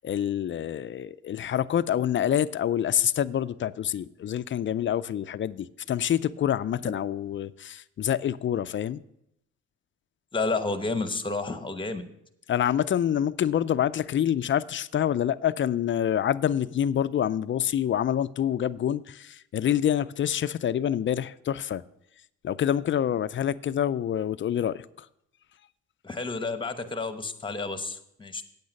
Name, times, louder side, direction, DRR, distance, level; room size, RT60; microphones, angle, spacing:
voice 1, 0.0-9.0 12.5-21.8 22.4-25.1, left 10 dB, 40° left, 15 dB, 0.4 m, -27 dB
voice 2, 10.3-12.0 26.0-28.4, left 3 dB, 15° left, 9 dB, 1.0 m, -30 dB
8.7 x 8.6 x 5.2 m, 0.78 s
cardioid pair, 90°, 30 cm